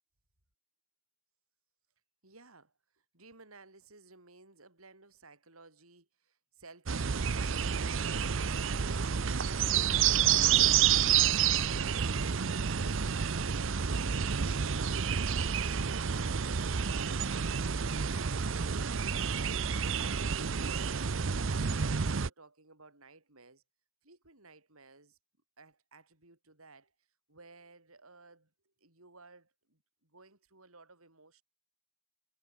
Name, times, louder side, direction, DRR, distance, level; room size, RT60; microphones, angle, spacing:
voice 1, 2.2-9.2 9.7-12.6 13.1-16.2 16.7-21.0 21.4-23.6 24.0-25.2 25.6-26.9 27.3-31.4, right 3 dB, 80° right, 6.4 m, -57 dB
sound 1, 6.9-22.3, right 7 dB, 60° right, 0.7 m, -29 dB
head